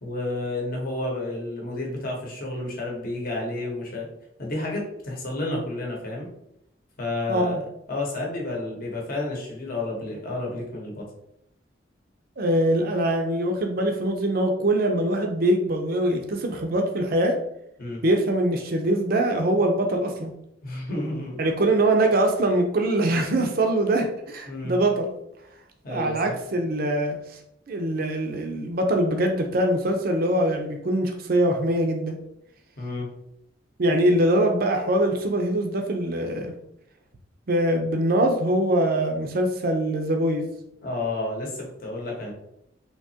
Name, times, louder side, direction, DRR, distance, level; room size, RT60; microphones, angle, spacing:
voice 1, 0.0-4.1 4.4-6.3 7.0-7.6 7.9-11.1 17.8-18.0 20.6-21.4 24.5-24.8 25.8-26.4 32.8-33.1 40.8-42.3, left 2 dB, 50° left, -1 dB, 0.9 m, -31 dB
voice 2, 7.3-7.6 12.4-17.4 18.0-20.3 21.4-25.1 25.9-27.2 27.7-32.2 33.8-36.5 37.5-40.5, right 1 dB, 50° right, 3 dB, 0.5 m, -23 dB
3.6 x 2.8 x 2.7 m, 0.78 s
head